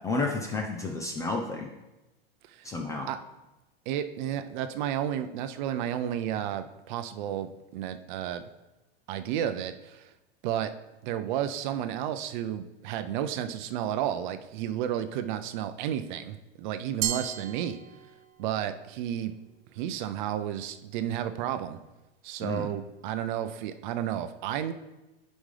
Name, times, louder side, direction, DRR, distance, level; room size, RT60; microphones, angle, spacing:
voice 1, 0.0-1.7 2.6-3.1 22.4-22.7, left 3 dB, 10° left, 2 dB, 0.3 m, -31 dB
voice 2, 3.9-8.5 9.1-10.1 10.4-10.7 11.0-17.8 18.4-19.3 19.7-21.8 22.2-24.7, right 10 dB, 50° right, 10 dB, 0.6 m, -32 dB
Glass, 17.0-18.5, right 10 dB, 80° right, 0.8 m, -34 dB
9.8 x 5.3 x 3.3 m, 1.0 s
supercardioid pair, 140°, 30 cm